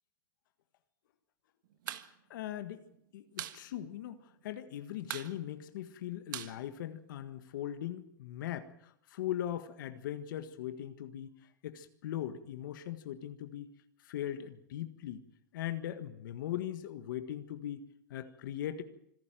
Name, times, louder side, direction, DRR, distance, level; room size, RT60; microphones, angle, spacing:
sound 1, 1.7-2.1 2.3-2.4 2.7-3.6 3.9-4.0 4.3-4.7 5.0-7.4, right 13 dB, 75° right, 1.5 m, -42 dB
voice 1, 2.3-2.8 3.1-11.3 11.6-13.7 14.0-15.3 15.5-18.8, left 11 dB, 75° left, 9 dB, 1.7 m, -40 dB
26.0 x 11.0 x 9.1 m, 0.72 s
hypercardioid pair, 120°, 11 cm